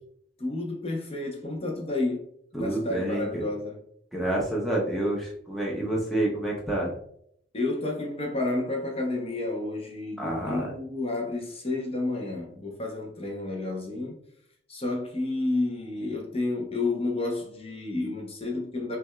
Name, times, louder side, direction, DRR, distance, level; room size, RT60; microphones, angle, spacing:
voice 1, 0.4-2.2 2.5-3.8 7.5-14.1 14.7-19.0, left 2 dB, 30° left, 0.7 m, -30 dB
voice 2, 2.5-3.4 4.1-6.9 10.2-10.7, right 1 dB, ahead, 0.6 m, -28 dB
5.8 x 2.4 x 2.3 m
head